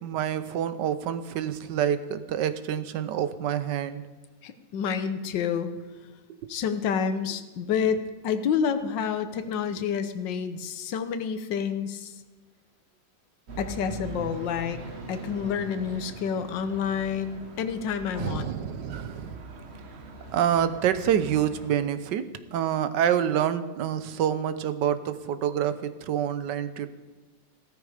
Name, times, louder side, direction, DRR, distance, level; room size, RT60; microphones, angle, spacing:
voice 1, 0.0-4.0 18.2-19.4 20.3-22.2 22.5-26.9, right 9 dB, 75° right, 12 dB, 1.4 m, -27 dB
voice 2, 4.4-5.7 6.5-12.1 13.6-14.8 15.1-18.5, left 7 dB, 80° left, 9 dB, 1.6 m, -29 dB
sound 1, 13.5-21.7, right 4 dB, 40° right, 1.4 m, -42 dB
15.0 x 13.0 x 5.0 m, 1.2 s
omnidirectional pair, 2.0 m